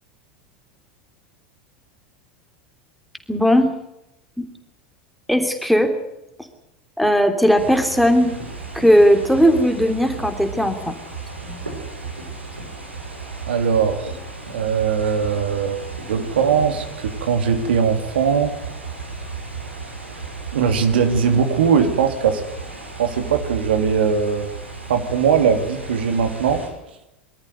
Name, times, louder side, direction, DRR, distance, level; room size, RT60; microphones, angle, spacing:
voice 1, 3.3-3.7 4.4-4.5 5.3-5.9 6.4-6.5 7.0-8.4 8.7-11.0 11.4-11.6, equal, ahead, 5 dB, 3.1 m, -17 dB
sound 1, 7.6-26.7, right 4 dB, 85° right, 5.9 m, -34 dB
voice 2, 13.4-14.2 14.5-18.6 20.5-22.4 23.0-24.5 24.9-26.6, right 6 dB, 65° right, 6 dB, 2.8 m, -20 dB
23.5 x 13.5 x 9.5 m, 0.89 s
figure-of-eight pair, 80°, 6 cm